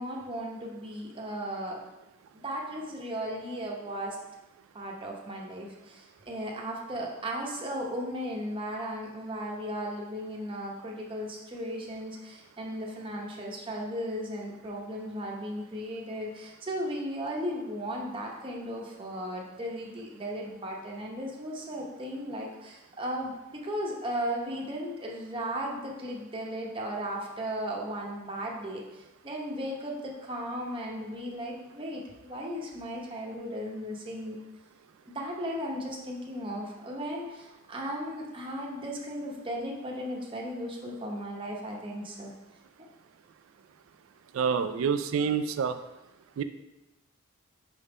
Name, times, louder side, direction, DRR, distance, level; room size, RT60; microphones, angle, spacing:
voice 1, 0.0-1.8 2.3-4.2 4.7-34.4 35.1-42.3, equal, 25° right, -2 dB, 0.8 m, -36 dB
voice 2, 44.3-45.8 46.4-46.5, right 6 dB, 70° right, 11 dB, 0.3 m, -27 dB
5.4 x 3.6 x 4.8 m, 1.0 s
head